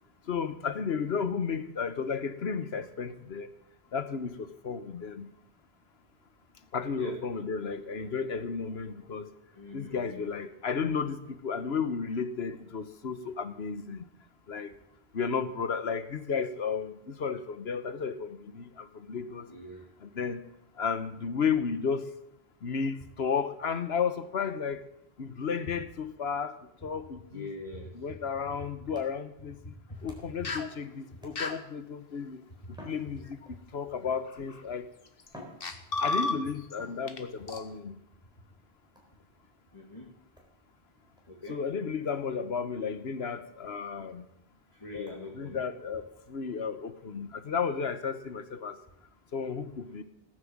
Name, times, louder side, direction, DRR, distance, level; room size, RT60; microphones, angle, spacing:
voice 1, 0.3-3.5 3.9-5.3 6.7-9.3 9.7-14.0 14.5-14.7 15.1-19.5 20.0-20.4 20.8-22.1 22.6-24.8 25.2-26.6 26.8-27.5 27.9-29.7 30.0-32.4 32.8-34.9 36.0-38.0 41.5-44.2 44.9-48.8 49.3-50.0, left 6 dB, 80° left, 11 dB, 1.4 m, -33 dB
voice 2, 9.5-10.2 19.5-19.8 27.3-27.9 39.7-40.1 41.3-41.6 44.7-45.6, left 1 dB, 30° left, -2 dB, 2.6 m, -42 dB
sound 1, 28.9-30.5 31.2-31.8 32.7-33.8 34.6-34.7 35.2-36.3 36.8-37.5 38.9-39.3 40.4-40.5 41.2-41.3 41.6-41.7 42.1-42.2 42.5-42.6 43.1-43.2 43.6-43.7 44.1-44.2 45.1-45.2, equal, 5° right, 3.9 m, -52 dB
sound 2, 30.4-30.7 31.4-31.6 33.3-33.5 34.3-34.6 35.3-35.4 35.6-36.8 37.1-37.2 37.5-37.6, left 3 dB, 60° left, 1.5 m, -32 dB
17.5 x 10.0 x 7.3 m, 0.79 s
omnidirectional pair, 1.1 m